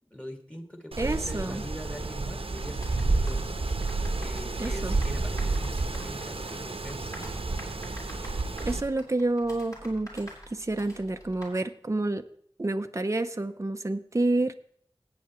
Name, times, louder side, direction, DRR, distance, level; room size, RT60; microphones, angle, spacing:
voice 1, 0.1-3.5 3.8-7.3, equal, 10° left, 3 dB, 2.3 m, -42 dB
Wind, 0.9-8.8, right 3 dB, 75° right, 0.9 m, -30 dB
voice 2, 1.0-1.6 4.6-5.0 8.6-12.3 12.6-14.5, right 2 dB, 30° right, 8 dB, 0.6 m, -29 dB
sound 1, 2.0-11.6, equal, 35° left, 4.7 m, -47 dB
17.5 x 8.5 x 3.1 m, 0.62 s
wide cardioid pair, 55°, 10 cm